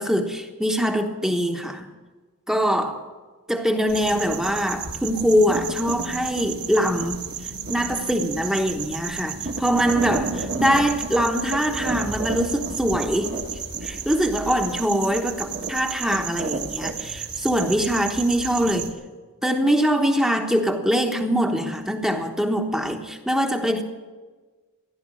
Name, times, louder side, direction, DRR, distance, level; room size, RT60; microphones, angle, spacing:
voice 1, 0.0-1.9 2.5-3.0 3.5-7.2 7.7-13.3 13.8-19.0 19.4-23.8, equal, 5° right, 4 dB, 1.1 m, -23 dB
sound 1, 3.9-18.9, right 4 dB, 50° right, 1.7 m, -31 dB
16.0 x 11.0 x 7.8 m, 1.3 s
head